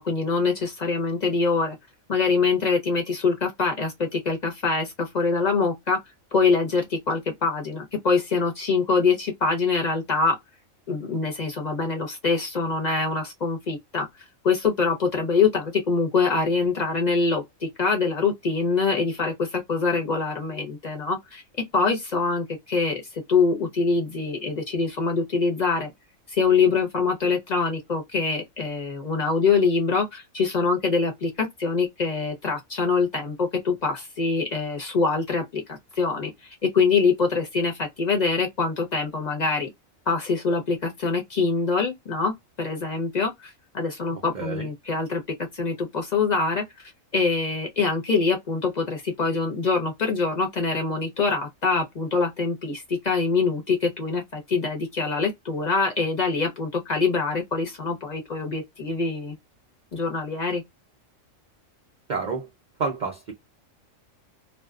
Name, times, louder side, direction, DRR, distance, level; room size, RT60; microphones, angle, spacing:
voice 1, 0.0-1.8 2.1-6.0 6.3-10.3 10.9-14.1 14.4-17.4 17.8-21.4 21.7-23.0 23.3-25.9 26.3-36.3 36.7-39.7 40.1-42.3 42.6-45.2 45.5-46.6 47.1-59.4 59.9-60.6, left 4 dB, 35° left, 0.9 m, -24 dB
voice 2, 44.1-44.7 62.1-62.5 62.8-63.3, right 4 dB, 50° right, 0.6 m, -29 dB
2.4 x 2.3 x 2.4 m
omnidirectional pair, 1.4 m